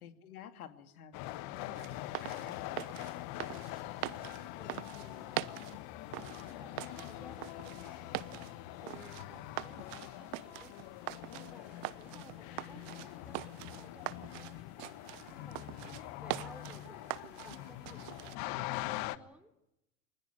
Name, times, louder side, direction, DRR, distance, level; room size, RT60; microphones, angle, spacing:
voice 1, 0.0-3.0 15.6-16.1, left 9 dB, 75° left, 8 dB, 2.9 m, -51 dB
sound 1, 1.1-19.2, left 16 dB, 55° left, 1.4 m, -44 dB
sound 2, 1.7-18.4, right 21 dB, 55° right, 1.2 m, -44 dB
voice 2, 4.0-5.5 6.0-8.2 8.8-10.8 11.3-14.6 15.3-19.5, right 1 dB, 5° right, 8 dB, 3.5 m, -57 dB
26.0 x 20.5 x 9.9 m, 0.87 s
hypercardioid pair, 85°, 43 cm